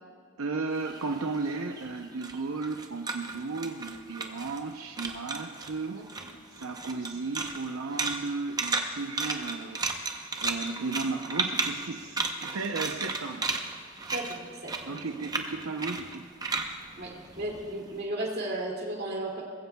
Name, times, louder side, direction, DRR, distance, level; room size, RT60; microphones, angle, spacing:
voice 1, 0.4-6.1 6.6-13.5 14.9-16.3, right 3 dB, 80° right, 3 dB, 0.7 m, -35 dB
sound 1, 0.8-4.7 5.0-5.7 6.1-17.9, right 3 dB, 20° right, 0.7 m, -34 dB
voice 2, 14.1-15.3 17.0-19.4, right 1 dB, 50° right, -1 dB, 2.4 m, -35 dB
20.5 x 15.0 x 2.3 m, 2.1 s
head